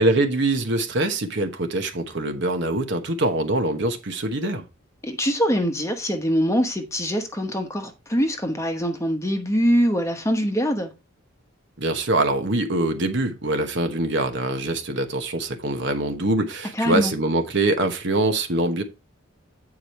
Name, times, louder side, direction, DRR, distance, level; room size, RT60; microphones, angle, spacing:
voice 1, 0.0-4.6 11.8-18.8, right 2 dB, 55° right, 1.1 m, -24 dB
voice 2, 5.0-10.9 16.7-17.1, equal, 15° left, 1.0 m, -23 dB
8.8 x 4.8 x 4.3 m
head